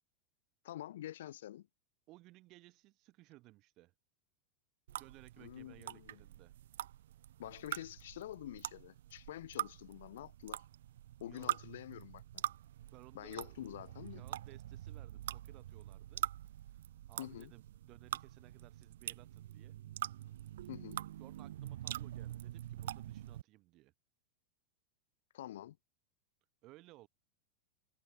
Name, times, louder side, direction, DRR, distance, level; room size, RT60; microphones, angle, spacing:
voice 1, 0.6-1.7 5.4-6.2 7.4-10.6 11.2-12.4 13.1-14.3 17.2-17.5 20.7-21.0 25.3-25.8, left 13 dB, 80° left, 0.9 m, -47 dB
voice 2, 2.1-3.9 5.0-6.6 11.2-11.5 12.9-13.6 14.1-16.3 16.7-16.8 17.1-19.8 20.6-20.7 21.2-23.9 26.6-27.1, right 19 dB, 30° right, 3.6 m, -60 dB
sound 1, 4.9-23.4, right 12 dB, 85° right, 0.9 m, -44 dB
supercardioid pair, 170°, 0 cm